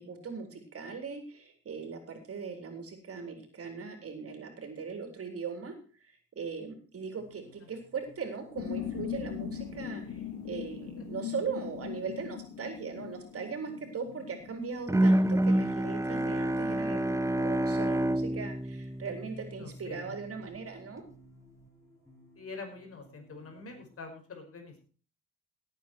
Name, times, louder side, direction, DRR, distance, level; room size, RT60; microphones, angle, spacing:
voice 1, 0.0-5.7 6.1-10.2 10.4-21.0, right 5 dB, 50° right, 5 dB, 4.1 m, -39 dB
sound 1, 7.2-24.0, equal, 10° left, 6.6 m, -60 dB
sound 2, 8.6-15.5, left 9 dB, 75° left, 2.6 m, -40 dB
voice 2, 9.8-10.4 19.0-19.2 19.6-20.1 22.4-24.8, left 3 dB, 50° left, 4 dB, 5.5 m, -46 dB
Bowed string instrument, 14.9-20.0, right 1 dB, 10° right, 0.8 m, -28 dB
17.5 x 8.8 x 4.6 m, 0.39 s
cardioid pair, 90°, 30 cm